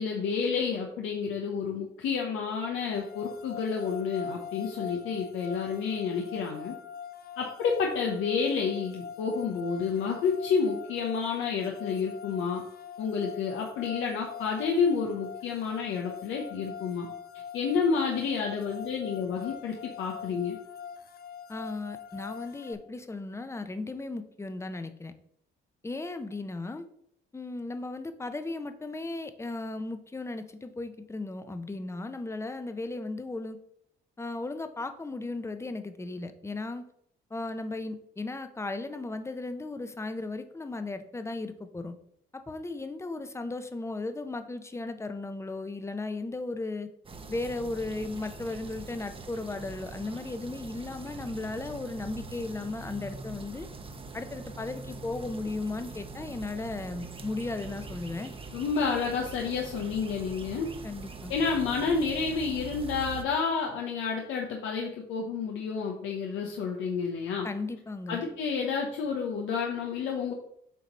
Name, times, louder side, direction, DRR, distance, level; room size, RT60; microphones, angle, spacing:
voice 1, 0.0-6.8 7.4-12.6 13.0-17.1 17.5-20.6 58.5-60.7 61.3-67.5 68.1-70.3, left 5 dB, 90° left, 0 dB, 0.9 m, -30 dB
sound 1, 2.9-22.7, left 7 dB, 50° left, 0.6 m, -43 dB
voice 2, 21.5-25.1 25.8-26.8 27.3-33.6 34.2-36.9 37.3-41.9 42.3-46.9 47.3-53.7 54.1-58.3 60.8-61.3 67.4-68.2, left 2 dB, 15° left, 9 dB, 0.7 m, -36 dB
sound 2, 47.0-63.2, right 4 dB, 25° right, 0.8 m, -43 dB
8.2 x 3.0 x 5.4 m, 0.70 s
cardioid pair, 90°, 20 cm